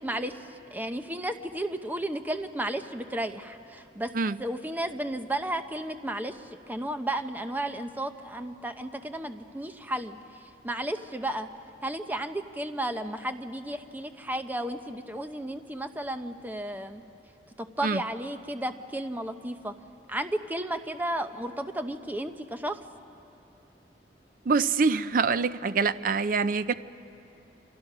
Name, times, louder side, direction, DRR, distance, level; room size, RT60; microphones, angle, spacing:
voice 1, 0.0-4.1 4.4-11.5 11.8-17.0 17.6-19.8 20.1-22.8, right 1 dB, 10° right, 8 dB, 0.8 m, -33 dB
voice 2, 24.5-26.7, right 4 dB, 50° right, 13 dB, 0.5 m, -25 dB
28.5 x 26.5 x 6.2 m, 2.9 s
head